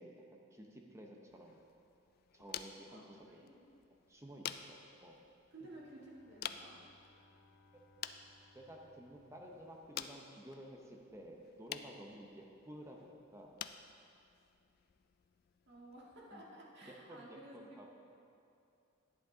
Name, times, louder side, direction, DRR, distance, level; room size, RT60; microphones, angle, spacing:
voice 1, 0.0-1.6 2.3-3.4 4.1-5.2 8.5-13.5 16.3-16.4 16.9-17.9, right 1 dB, 15° right, 0 dB, 0.7 m, -53 dB
sound 1, 1.3-16.3, left 10 dB, 50° left, 0.3 m, -51 dB
voice 2, 2.9-3.6 5.5-6.8 15.7-17.6, right 1 dB, 55° right, -4 dB, 1.8 m, -54 dB
Bowed string instrument, 5.7-10.4, left 2 dB, 5° left, 1.6 m, -69 dB
11.5 x 7.9 x 3.9 m, 2.6 s
head